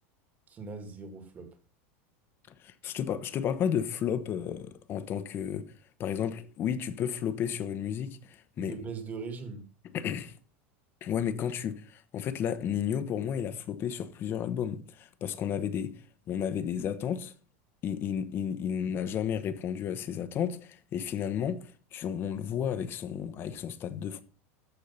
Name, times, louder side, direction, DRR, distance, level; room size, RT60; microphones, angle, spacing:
voice 1, 0.5-1.6 8.6-9.7, right 4 dB, 25° right, 2.0 m, -40 dB
voice 2, 2.6-5.7 6.0-8.8 9.9-10.4 11.0-16.0 16.3-17.3 17.8-24.2, left 8 dB, 30° left, 1.0 m, -32 dB
13.5 x 4.7 x 5.6 m
supercardioid pair, 150°, 7 cm